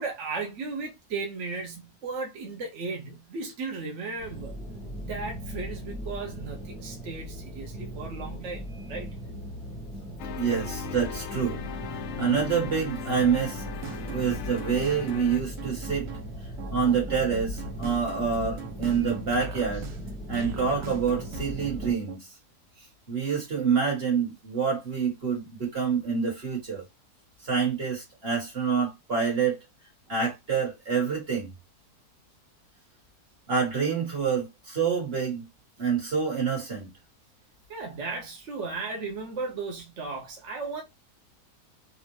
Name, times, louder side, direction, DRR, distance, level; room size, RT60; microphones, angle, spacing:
voice 1, 0.0-4.6 5.0-9.1 37.7-40.8, right 4 dB, 55° right, 1.0 m, -35 dB
sound 1, 4.2-21.9, equal, ahead, 0.7 m, -38 dB
sound 2, 10.2-15.4, left 7 dB, 80° left, 0.6 m, -38 dB
voice 2, 10.4-11.6 12.2-13.6 14.0-16.1 16.7-19.9 20.3-22.3 23.1-26.8 27.4-29.6 30.1-31.5 33.5-35.5 35.8-36.9, right 6 dB, 40° right, 1.6 m, -27 dB
sound 3, 13.6-22.2, right 4 dB, 75° right, 1.2 m, -41 dB
3.5 x 2.5 x 3.0 m
omnidirectional pair, 1.7 m